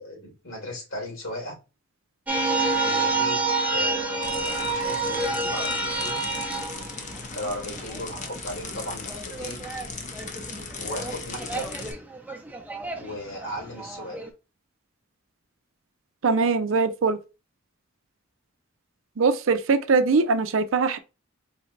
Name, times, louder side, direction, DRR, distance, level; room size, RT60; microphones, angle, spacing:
voice 1, 0.0-1.6 2.8-3.4 3.7-6.2 7.3-9.6 10.8-11.7 12.9-14.2, left 1 dB, 80° left, 2.4 m, -36 dB
sound 1, 2.3-8.3 8.6-14.3, right 3 dB, 10° right, 0.7 m, -29 dB
sound 2, 4.2-11.9, left 4 dB, 40° left, 0.7 m, -38 dB
voice 2, 16.2-17.2 19.2-21.0, right 4 dB, 75° right, 0.5 m, -21 dB
4.0 x 3.2 x 2.5 m
head